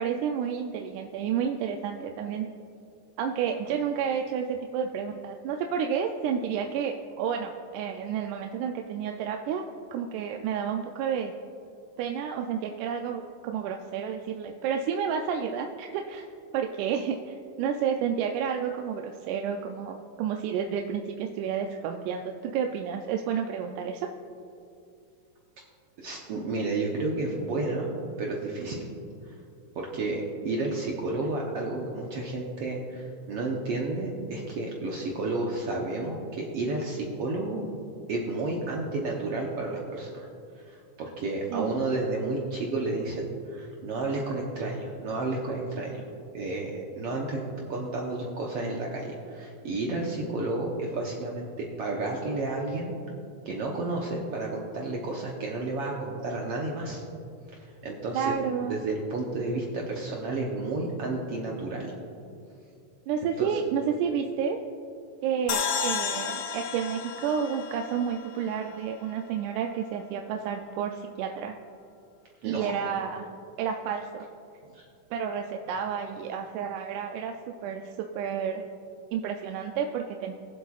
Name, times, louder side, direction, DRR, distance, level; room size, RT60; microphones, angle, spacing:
voice 1, 0.0-2.5 3.2-11.3 12.0-16.3 16.5-24.1 41.5-41.7 58.1-58.8 63.1-64.6 65.2-71.5 72.4-73.3 73.6-74.3 75.1-77.3 77.6-78.7 79.1-80.3, right 7 dB, 80° right, 3 dB, 2.0 m, -30 dB
voice 2, 26.0-27.9 28.2-28.9 29.2-29.4 29.7-37.6 38.1-40.3 40.6-46.0 46.3-52.9 53.4-57.0 57.5-58.3 58.7-61.9 63.4-63.5 72.4-72.7 74.7-74.9, right 2 dB, 65° right, -2 dB, 1.5 m, -31 dB
sound 1, 65.5-68.8, left 7 dB, 80° left, 1.3 m, -32 dB
22.0 x 7.7 x 2.4 m, 2.5 s
omnidirectional pair, 3.6 m